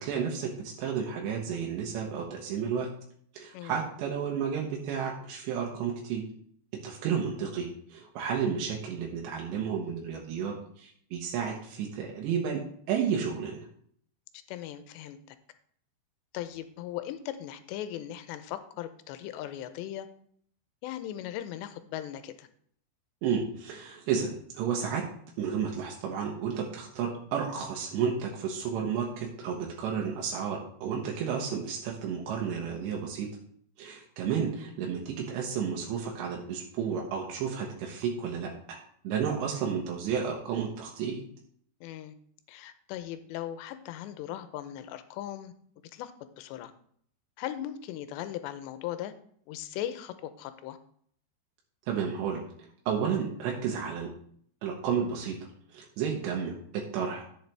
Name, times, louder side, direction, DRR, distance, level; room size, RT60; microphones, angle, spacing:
voice 1, 0.0-2.9 3.3-6.2 6.7-12.6 12.9-13.7 23.2-25.1 25.4-33.3 33.8-38.8 39.0-41.2 51.9-54.1 54.6-55.4 55.7-57.2, right 7 dB, 90° right, -1 dB, 3.3 m, -32 dB
voice 2, 14.5-15.2 16.3-20.1 20.8-22.5 41.8-42.1 42.5-45.5 45.9-46.1 46.4-46.7 47.4-49.1 49.5-50.8, left 12 dB, 85° left, 10 dB, 2.8 m, -38 dB
10.5 x 7.4 x 3.4 m, 0.62 s
omnidirectional pair, 5.0 m